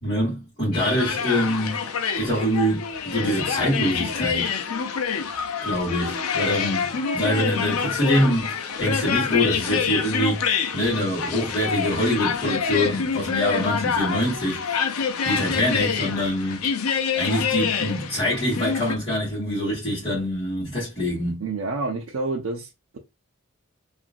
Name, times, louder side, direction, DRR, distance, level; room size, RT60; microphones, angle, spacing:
voice 1, 0.0-1.8 2.1-4.5 5.6-6.9 7.1-10.5 10.7-16.7 17.1-21.4, equal, 25° left, 1.6 m, -25 dB
sound 1, 0.7-19.0, left 6 dB, 90° left, 0.5 m, -26 dB
voice 2, 21.4-23.0, right 3 dB, 70° right, 0.5 m, -29 dB
2.9 x 2.5 x 2.4 m
head